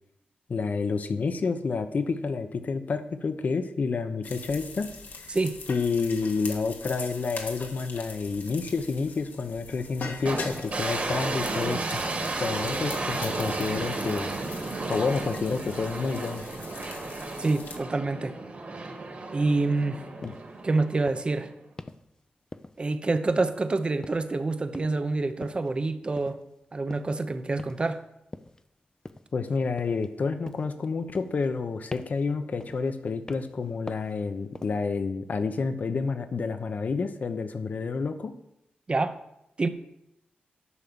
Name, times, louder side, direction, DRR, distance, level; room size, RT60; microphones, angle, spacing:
voice 1, 0.5-5.3 5.7-12.0 12.4-14.3 14.9-16.4 20.2-20.3 29.3-38.3, left 4 dB, 55° left, 9 dB, 0.9 m, -29 dB
sound 1, 4.2-17.8, left 4 dB, 75° left, 1.8 m, -42 dB
sound 2, 10.3-21.5, right 3 dB, 50° right, 2.0 m, -33 dB
voice 2, 17.4-18.4 19.3-20.0 20.6-21.5 22.8-26.4 26.7-28.0 38.9-39.2 39.6-39.7, right 3 dB, 30° right, 10 dB, 0.8 m, -27 dB
sound 3, 20.2-20.5 21.1-21.3 21.8-22.1 22.5-22.9 23.3-23.7 24.0-24.4 24.7-25.0 25.4-25.7 26.2-26.4 26.9-27.2 27.6-27.9 28.3-28.6 29.0-29.4 29.8-30.2 30.5-30.8 31.1-31.6 31.9-32.3 32.6-32.9 33.3-33.6 33.9-34.2 34.5-34.9, left 2 dB, 20° left, 0.5 m, -43 dB
11.5 x 5.8 x 6.9 m, 0.83 s
wide cardioid pair, 120°, 3 cm